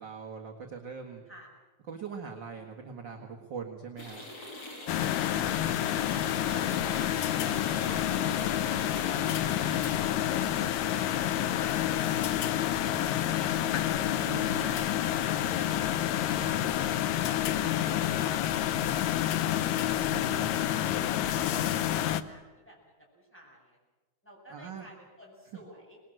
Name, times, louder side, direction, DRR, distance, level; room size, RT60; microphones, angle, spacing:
voice 1, 0.0-1.2 1.9-4.4 14.2-14.8 20.1-20.5 24.5-24.9, right 5 dB, 45° right, 2 dB, 1.9 m, -41 dB
sound 1, 4.0-9.9, left 1 dB, 55° left, 6.7 m, -44 dB
sound 2, 4.9-22.2, left 11 dB, 75° left, 2.1 m, -28 dB
voice 2, 5.0-5.9 6.3-10.1 10.5-14.9 15.4-19.4 19.8-21.0 21.3-23.8 24.2-26.0, right 1 dB, 5° left, -3 dB, 7.8 m, -53 dB
25.5 x 20.0 x 7.7 m, 1.2 s
omnidirectional pair, 3.4 m